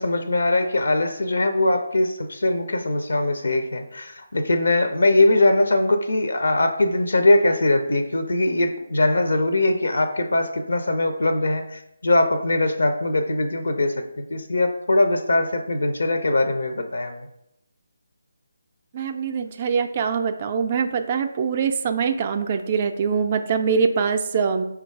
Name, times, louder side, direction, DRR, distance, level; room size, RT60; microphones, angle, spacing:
voice 1, 0.0-17.2, left 2 dB, 75° left, 7 dB, 0.4 m, -21 dB
voice 2, 18.9-24.7, right 6 dB, 35° right, 7 dB, 0.3 m, -23 dB
3.8 x 2.3 x 4.5 m, 0.81 s
figure-of-eight pair, 155°, 0 cm